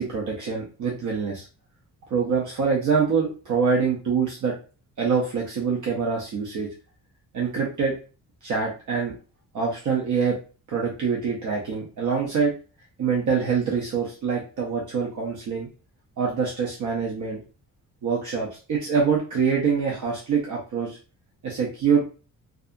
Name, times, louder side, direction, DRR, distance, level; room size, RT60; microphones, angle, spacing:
voice 1, 0.0-1.4 2.1-4.5 5.0-6.7 7.3-7.9 8.4-9.1 9.5-10.4 10.7-12.5 13.0-15.7 16.2-17.4 18.0-21.0 21.4-22.0, right 5 dB, 55° right, -3 dB, 0.6 m, -25 dB
2.6 x 2.4 x 2.4 m, 0.35 s
wide cardioid pair, 170°, 37 cm